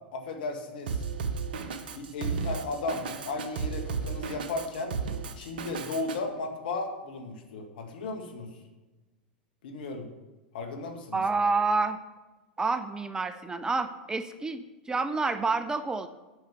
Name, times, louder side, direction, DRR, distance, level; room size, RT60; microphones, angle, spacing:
voice 1, 0.1-1.0 1.9-5.0 5.4-8.5 9.6-10.1 10.5-11.2, left 3 dB, 70° left, 5 dB, 1.8 m, -35 dB
Drum kit, 0.9-6.2, right 5 dB, 70° right, 1.0 m, -34 dB
voice 2, 11.1-12.0 12.6-16.1, right 3 dB, 15° right, 11 dB, 0.6 m, -28 dB
9.5 x 6.5 x 6.9 m, 1.1 s
hypercardioid pair, 95°, 5 cm